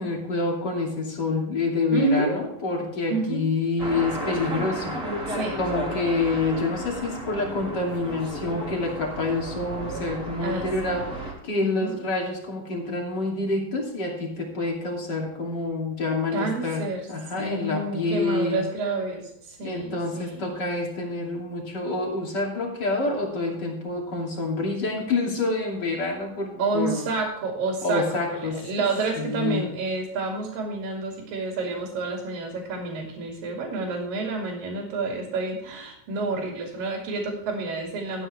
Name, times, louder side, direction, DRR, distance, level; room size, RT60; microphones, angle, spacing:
voice 1, 0.0-5.2 5.6-16.8 17.1-18.6 19.6-27.0 27.8-28.6 29.2-29.7, left 3 dB, 30° left, -1 dB, 2.5 m, -27 dB
voice 2, 1.9-2.4 3.1-3.5 5.3-5.6 10.4-10.7 11.6-11.9 16.3-17.1 17.3-20.5 26.6-38.3, right 3 dB, 60° right, 0 dB, 3.8 m, -29 dB
sound 1, 3.8-11.3, right 1 dB, 20° right, 2.6 m, -34 dB
14.0 x 9.8 x 3.4 m, 0.80 s
omnidirectional pair, 4.9 m